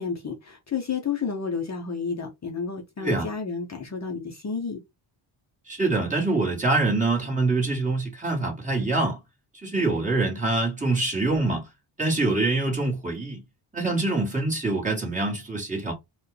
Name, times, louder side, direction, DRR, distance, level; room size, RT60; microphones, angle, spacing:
voice 1, 0.0-4.8, left 5 dB, 35° left, 0.9 m, -31 dB
voice 2, 5.7-9.2 9.6-11.7 12.0-13.4 13.7-15.9, right 2 dB, 15° right, 1.9 m, -25 dB
4.6 x 2.5 x 3.2 m
cardioid pair, 130°, 49 cm